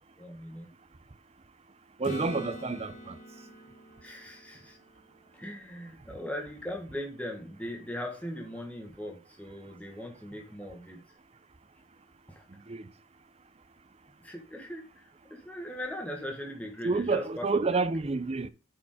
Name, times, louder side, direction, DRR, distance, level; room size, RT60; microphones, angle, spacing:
voice 1, 0.2-0.7 4.0-4.8 5.3-11.0 12.3-12.4 14.2-17.6, left 1 dB, 5° left, 1.3 m, -39 dB
Acoustic guitar / Strum, 2.0-5.8 10.6-10.7, left 1 dB, 40° left, 1.5 m, -44 dB
voice 2, 2.0-3.2 12.7-12.9 16.8-18.5, right 3 dB, 30° right, 0.5 m, -29 dB
7.4 x 5.0 x 4.9 m
head